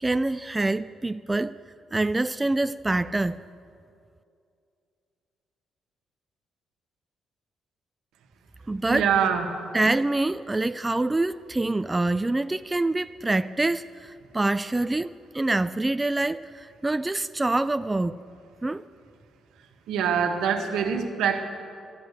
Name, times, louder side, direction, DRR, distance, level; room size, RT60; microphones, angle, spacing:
voice 1, 0.0-1.5 1.9-3.4 8.7-9.1 9.7-18.2 18.6-18.8, right 2 dB, 15° right, 0.3 m, -26 dB
voice 2, 8.9-9.5 19.9-21.4, right 7 dB, 90° right, 1.3 m, -24 dB
12.0 x 11.0 x 8.1 m
cardioid pair, 90°, 0 cm